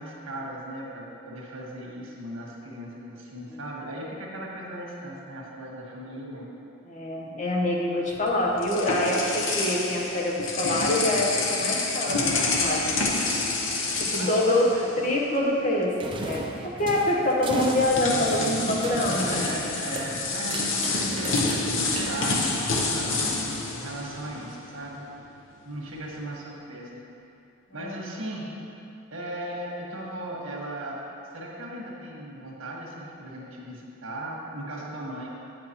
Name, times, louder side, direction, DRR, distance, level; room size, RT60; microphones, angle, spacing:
voice 1, 0.0-6.5 12.0-12.6 14.1-14.9 18.1-18.9 19.2-25.1 25.6-27.0 27.7-28.5 29.1-31.0 31.3-35.3, right 1 dB, 85° right, -3 dB, 1.6 m, -37 dB
voice 2, 6.9-12.3 12.6-13.0 13.9-14.7 15.0-19.5 27.8-27.9, left 1 dB, 35° left, -2 dB, 0.9 m, -25 dB
sound 1, 8.1-15.4 15.7-15.9 17.0-17.1 17.5-24.7, left 3 dB, 75° left, 0.8 m, -28 dB
sound 2, 16.0-22.7, right 2 dB, 25° right, 0.4 m, -36 dB
9.3 x 7.8 x 3.0 m, 2.7 s
head